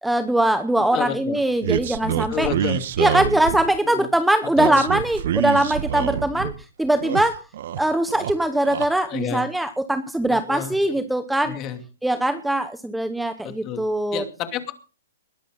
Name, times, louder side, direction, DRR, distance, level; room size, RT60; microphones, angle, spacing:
voice 1, 0.0-2.5 3.0-6.5 6.8-7.4 7.8-11.6 12.0-14.2, right 1 dB, ahead, 10 dB, 0.9 m, -21 dB
voice 2, 0.9-1.4 2.1-2.8 3.8-4.1 4.4-5.0 5.4-5.5 6.3-6.5 9.0-9.4 10.3-11.0 11.4-11.8 13.4-13.8 14.1-14.7, left 9 dB, 25° left, 7 dB, 2.6 m, -30 dB
sound 1, 1.6-3.8 4.6-6.5 6.9-7.8 8.1-8.9, right 10 dB, 55° right, 1.1 m, -26 dB
20.5 x 11.5 x 4.0 m, 0.34 s
hypercardioid pair, 155°, 0 cm